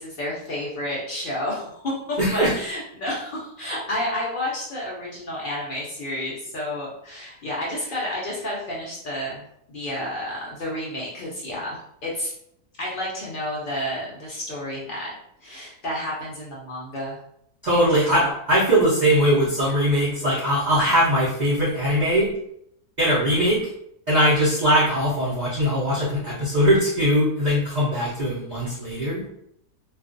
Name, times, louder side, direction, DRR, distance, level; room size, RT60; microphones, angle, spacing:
voice 1, 0.0-12.3 12.8-15.1 15.4-17.2 17.7-18.3, left 1 dB, 65° left, -6 dB, 0.5 m, -31 dB
voice 2, 2.2-2.5 17.6-22.3 23.0-23.6 24.1-29.2, equal, 75° right, -8 dB, 0.4 m, -20 dB
2.4 x 2.3 x 2.4 m, 0.73 s
omnidirectional pair, 1.6 m